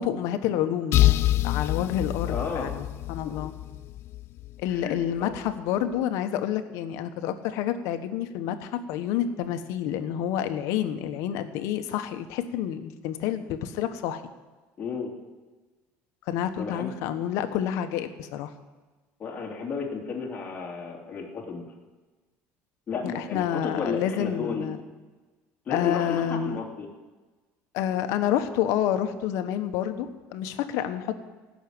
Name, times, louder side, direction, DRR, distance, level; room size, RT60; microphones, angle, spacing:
voice 1, 0.0-3.5 4.6-14.2 16.3-18.5 23.0-24.8 25.7-26.6 27.7-31.1, left 10 dB, 70° left, 9 dB, 1.1 m, -29 dB
sound 1, 0.9-4.6, left 15 dB, 50° left, 0.4 m, -25 dB
voice 2, 2.3-2.7 4.7-5.3 14.8-15.1 16.6-16.9 19.2-21.6 22.9-24.7 25.7-26.9, left 5 dB, 30° left, -2 dB, 2.8 m, -33 dB
16.0 x 6.4 x 8.8 m, 1.3 s
cardioid pair, 135°, 5 cm